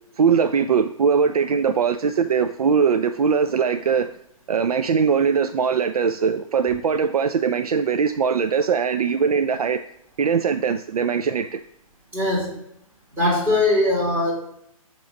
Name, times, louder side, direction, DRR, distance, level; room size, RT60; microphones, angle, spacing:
voice 1, 0.2-4.1 4.5-9.8 10.2-11.6, right 6 dB, 90° right, 9 dB, 0.4 m, -21 dB
voice 2, 12.1-12.6 13.2-14.3, left 2 dB, 10° right, -5 dB, 2.7 m, -20 dB
7.5 x 3.0 x 5.1 m, 0.72 s
hypercardioid pair, 140°, 19 cm